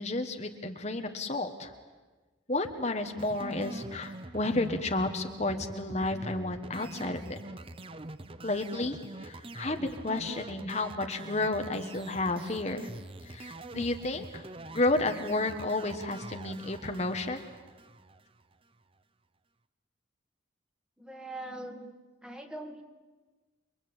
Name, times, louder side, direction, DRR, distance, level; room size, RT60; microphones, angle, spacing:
voice 1, 0.0-1.7 2.5-7.4 8.4-12.9 13.2-14.4 14.7-17.4, left 2 dB, 35° left, 5 dB, 1.5 m, -31 dB
sound 1, 3.2-18.5, right 2 dB, 30° right, 0.8 m, -44 dB
voice 2, 21.0-21.9 22.2-22.8, right 1 dB, 5° right, 4 dB, 2.0 m, -41 dB
29.0 x 23.0 x 8.9 m, 1.3 s
head